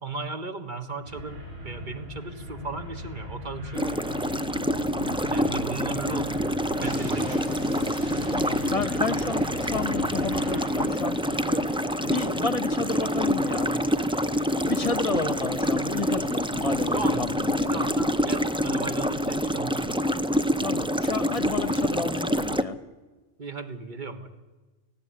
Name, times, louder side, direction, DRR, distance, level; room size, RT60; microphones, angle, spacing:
voice 1, 0.0-4.0 5.3-6.4 6.8-7.5 16.9-19.9 23.4-24.3, right 3 dB, 40° right, 7 dB, 1.7 m, -36 dB
sound 1, 1.0-10.6, left 1 dB, 85° right, 6.7 m, -39 dB
sound 2, 3.8-22.6, equal, 5° right, 0.4 m, -26 dB
sound 3, 6.8-17.0, right 1 dB, 65° right, 4.5 m, -49 dB
voice 2, 8.3-11.7 12.0-13.8 14.6-17.7 20.6-22.8, left 4 dB, 30° left, 12 dB, 1.1 m, -31 dB
18.0 x 17.0 x 9.7 m, 1.2 s
omnidirectional pair, 1.2 m